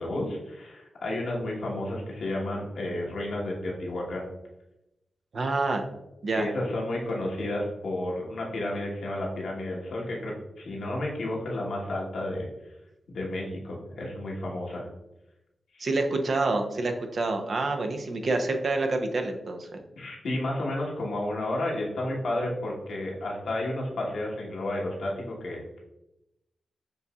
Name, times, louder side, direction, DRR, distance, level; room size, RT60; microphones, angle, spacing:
voice 1, 0.0-4.3 6.3-12.5 13.1-14.9 15.7-15.9 20.0-25.8, left 1 dB, 80° left, -3 dB, 1.2 m, -32 dB
voice 2, 5.3-5.8 6.2-6.5 15.8-19.8, right 3 dB, 65° right, 4 dB, 0.6 m, -27 dB
6.8 x 2.7 x 2.3 m, 0.90 s
supercardioid pair, 45°, 0 cm